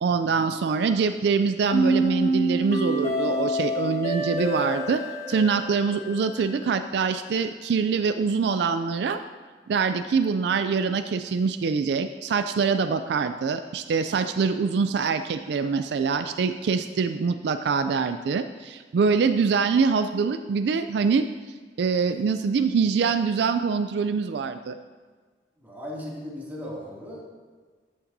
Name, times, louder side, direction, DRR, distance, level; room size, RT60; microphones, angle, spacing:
voice 1, 0.0-5.0 5.3-9.2 9.7-21.3 21.8-24.8, right 5 dB, 70° right, 10 dB, 0.3 m, -24 dB
sound 1, 1.7-6.7, right 1 dB, 45° left, 1.4 m, -27 dB
voice 2, 25.6-27.2, left 1 dB, 10° right, -6 dB, 2.4 m, -37 dB
13.0 x 8.5 x 2.7 m, 1.5 s
head